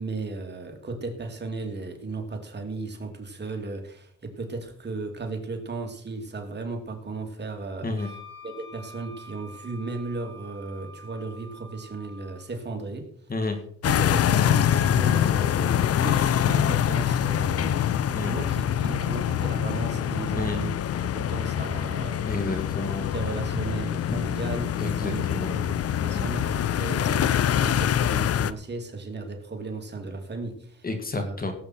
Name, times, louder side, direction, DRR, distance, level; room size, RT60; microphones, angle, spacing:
voice 1, 0.0-8.2 8.4-13.1 13.8-20.8 21.1-22.3 23.1-30.9 31.1-31.4, right 3 dB, 35° right, 3 dB, 2.9 m, -35 dB
Wind instrument woodwind instrument, 8.0-12.4, equal, 20° right, 4.7 m, -47 dB
sound 1, 13.8-28.5, left 10 dB, 50° left, 0.7 m, -25 dB
voice 2, 22.2-23.1 23.5-23.6 24.1-24.2 24.8-25.5 26.1-26.3 30.8-31.5, left 2 dB, 30° left, 6 dB, 2.2 m, -30 dB
18.0 x 8.2 x 4.5 m, 0.62 s
cardioid pair, 90°, 30 cm